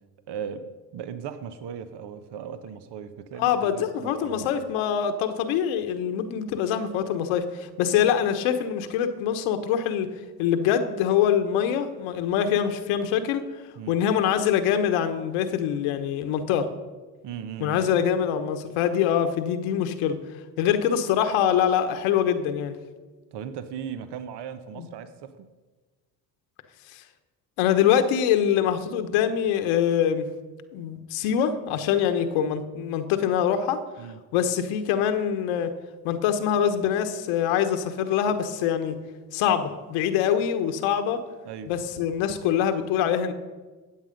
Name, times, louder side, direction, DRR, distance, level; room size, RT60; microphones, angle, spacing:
voice 1, 0.3-4.7 13.8-14.0 17.2-17.9 23.3-25.5 34.0-34.2 41.4-41.7, right 8 dB, 55° right, 10 dB, 1.1 m, -37 dB
voice 2, 3.4-10.1 10.4-13.4 13.9-16.7 17.6-20.2 20.6-22.8 24.8-24.9 26.9-27.0 27.6-30.3 30.7-33.8 34.3-35.7 36.0-39.0 39.3-41.2 41.7-43.3, left 9 dB, 75° left, 8 dB, 1.2 m, -24 dB
14.5 x 8.2 x 5.2 m, 1.3 s
hypercardioid pair, 60°, 50 cm